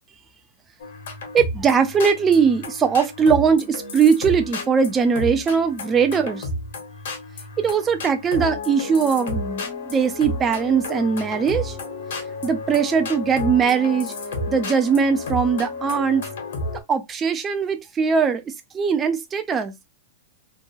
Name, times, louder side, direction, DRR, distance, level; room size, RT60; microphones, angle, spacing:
sound 1, 0.8-16.8, left 2 dB, 65° left, 1.2 m, -32 dB
voice 1, 1.3-6.5 7.6-11.8 12.4-14.1 14.5-16.2 16.9-19.7, right 6 dB, 15° right, 0.3 m, -20 dB
2.8 x 2.2 x 2.6 m
supercardioid pair, 170°, 0 cm